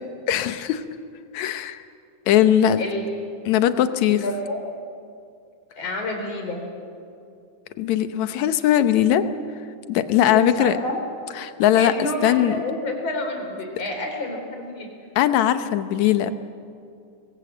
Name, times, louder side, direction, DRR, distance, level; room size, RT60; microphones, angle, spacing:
voice 1, 0.3-0.8 1.3-1.8 2.3-2.8 3.5-4.2 7.8-9.2 9.9-10.8 11.4-11.9 12.2-12.6 15.2-16.3, left 11 dB, 70° left, 10 dB, 2.2 m, -19 dB
voice 2, 4.1-4.6 5.8-6.6 10.3-11.0 11.8-14.9, left 2 dB, 55° left, 2 dB, 5.1 m, -29 dB
27.5 x 22.0 x 7.9 m, 2.4 s
omnidirectional pair, 3.6 m